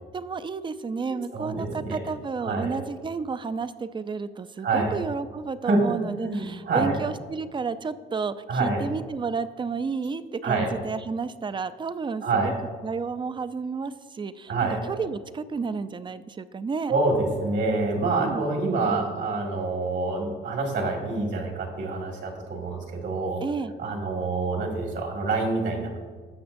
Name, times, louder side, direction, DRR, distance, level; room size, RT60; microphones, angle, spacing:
voice 1, 0.1-12.5 12.8-14.5 14.8-16.9 18.2-18.4 23.4-23.7, right 5 dB, 25° right, 13 dB, 0.4 m, -31 dB
voice 2, 1.1-2.0 2.4-2.8 4.6-4.9 5.6-5.8 6.1-7.0 8.5-8.8 10.4-10.7 12.2-12.5 14.5-14.8 16.9-23.4 23.8-26.0, right 3 dB, 65° right, 1 dB, 1.8 m, -26 dB
14.5 x 6.0 x 2.6 m, 1.5 s
cardioid pair, 90°, 20 cm